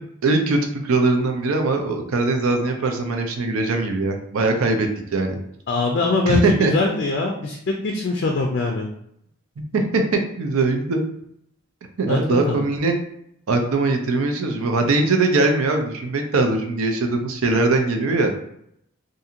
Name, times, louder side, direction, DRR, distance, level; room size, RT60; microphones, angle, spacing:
voice 1, 0.2-5.4 6.3-6.7 9.7-11.0 12.0-12.9 13.5-18.3, right 3 dB, 90° right, 4 dB, 0.5 m, -21 dB
voice 2, 5.7-8.9 12.1-12.6, left 3 dB, 50° left, 1 dB, 0.3 m, -22 dB
2.8 x 2.6 x 2.4 m, 0.72 s
head